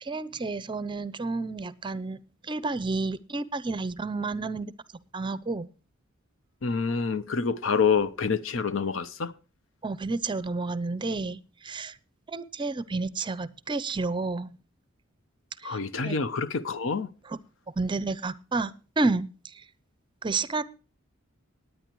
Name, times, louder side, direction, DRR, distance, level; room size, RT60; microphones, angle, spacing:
voice 1, 0.0-4.7 5.1-5.7 9.8-11.9 12.3-14.5 15.6-15.8 16.0-16.2 17.3-17.4 17.8-19.3 20.2-20.6, right 3 dB, 25° right, 0.6 m, -30 dB
voice 2, 6.6-9.3 15.6-17.1, left 5 dB, 70° left, 0.7 m, -27 dB
19.5 x 9.3 x 3.0 m
head